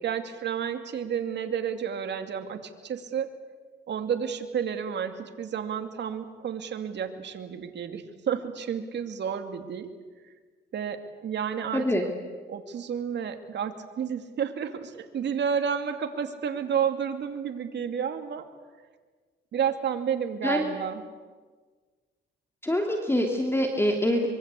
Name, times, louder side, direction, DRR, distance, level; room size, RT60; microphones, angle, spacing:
voice 1, 0.0-3.3 3.9-9.9 10.7-11.9 12.5-18.5 19.5-21.0, right 7 dB, 60° right, 7 dB, 2.5 m, -31 dB
voice 2, 11.7-12.1 20.4-20.7 22.6-24.3, left 1 dB, 10° left, 2 dB, 3.0 m, -25 dB
25.0 x 23.5 x 8.4 m, 1.5 s
cardioid pair, 90°, 20 cm